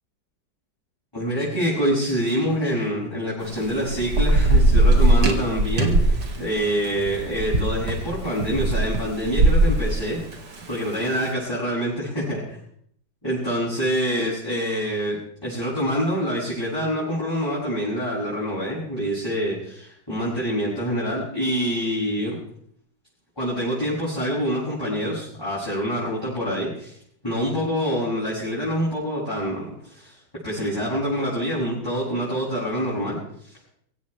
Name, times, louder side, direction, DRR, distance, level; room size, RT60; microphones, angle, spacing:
voice 1, 1.1-10.2 10.7-12.6 13.2-15.2 15.4-22.4 23.4-27.0 27.2-33.6, equal, 10° left, -9 dB, 7.9 m, -26 dB
Thunder / Rain, 3.4-11.1, right 2 dB, 70° right, 2.8 m, -20 dB
24.5 x 16.0 x 3.5 m, 0.66 s
omnidirectional pair, 1.9 m